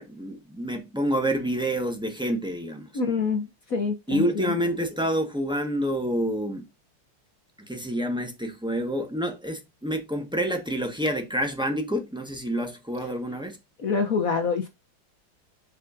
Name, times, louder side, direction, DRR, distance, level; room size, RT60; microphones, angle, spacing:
voice 1, 0.0-2.9 4.1-6.7 7.6-13.6, equal, 5° right, 0.9 m, -28 dB
voice 2, 2.9-4.6 13.8-14.7, left 5 dB, 50° left, 1.2 m, -26 dB
6.8 x 6.3 x 2.6 m
omnidirectional pair, 2.4 m